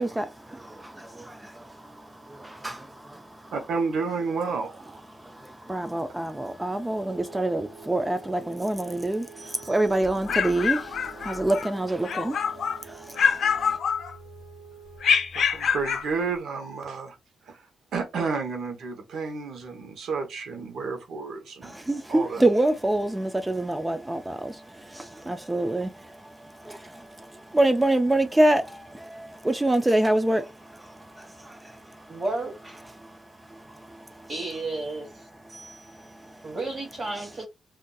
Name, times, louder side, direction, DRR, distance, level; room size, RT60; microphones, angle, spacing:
voice 1, 0.0-3.5 5.1-13.8 21.6-32.2 33.0-34.3 35.5-36.6, right 1 dB, 10° right, 0.3 m, -27 dB
voice 2, 3.5-5.0 15.3-17.2 17.4-17.6 17.9-21.8 22.1-22.4, right 4 dB, 85° right, 0.8 m, -31 dB
sound 1, 7.0-15.3, right 8 dB, 55° right, 1.2 m, -49 dB
sound 2, 10.0-11.7 12.0-12.8 13.1-14.4 15.0-16.1, left 6 dB, 70° left, 0.5 m, -25 dB
voice 3, 32.1-32.5 34.3-35.2 36.4-37.5, right 2 dB, 35° right, 1.2 m, -32 dB
3.8 x 2.5 x 2.3 m
cardioid pair, 125°, 0 cm